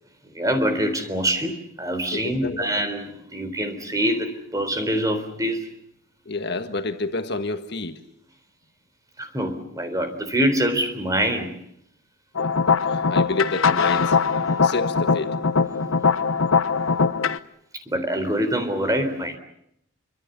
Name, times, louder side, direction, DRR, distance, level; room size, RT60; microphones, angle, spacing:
voice 1, 0.3-5.7 9.2-11.6 17.9-19.4, right 1 dB, 15° right, 3.8 m, -25 dB
voice 2, 2.1-2.7 6.2-8.0 12.3-14.2 14.6-15.4, left 3 dB, 55° left, 1.6 m, -29 dB
sound 1, 12.4-17.4, left 5 dB, 80° left, 1.0 m, -21 dB
28.0 x 25.5 x 6.9 m
head